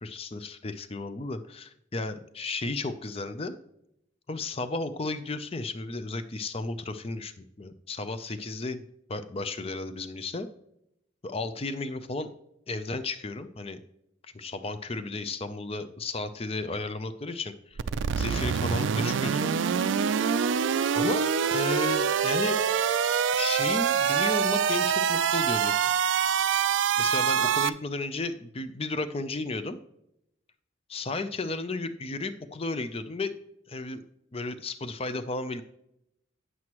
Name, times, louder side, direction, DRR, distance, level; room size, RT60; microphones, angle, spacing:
voice 1, 0.0-3.5 4.3-8.8 9.1-10.5 11.2-12.3 12.7-13.8 14.3-17.8 18.2-19.5 20.9-21.3 21.5-22.6 23.3-25.7 27.0-29.8 30.9-33.3 33.7-34.0 34.3-35.6, left 3 dB, 30° left, 11 dB, 0.5 m, -33 dB
sound 1, 17.8-27.7, right 7 dB, 75° right, 0.4 m, -25 dB
9.5 x 7.7 x 3.0 m, 0.79 s
head